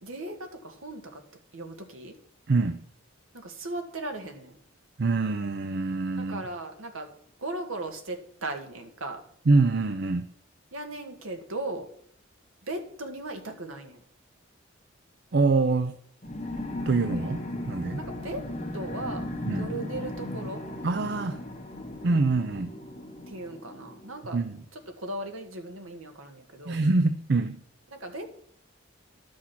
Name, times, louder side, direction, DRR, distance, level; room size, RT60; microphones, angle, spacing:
voice 1, 0.0-1.2 1.5-2.1 3.3-4.6 6.3-7.1 7.4-9.2 10.7-11.9 12.6-14.0 18.0-18.5 18.7-20.6 23.3-24.4 24.7-26.8 27.9-28.2, right 2 dB, 80° right, 5 dB, 1.6 m, -37 dB
voice 2, 2.5-2.8 5.0-6.4 9.5-10.3 15.3-15.9 16.9-18.0 19.5-19.7 20.8-21.4 22.0-22.7 24.3-24.6 26.6-27.6, right 3 dB, 55° right, 10 dB, 0.5 m, -25 dB
sound 1, 16.2-24.4, left 1 dB, 30° left, 1.8 m, -37 dB
11.5 x 6.2 x 5.9 m, 0.68 s
head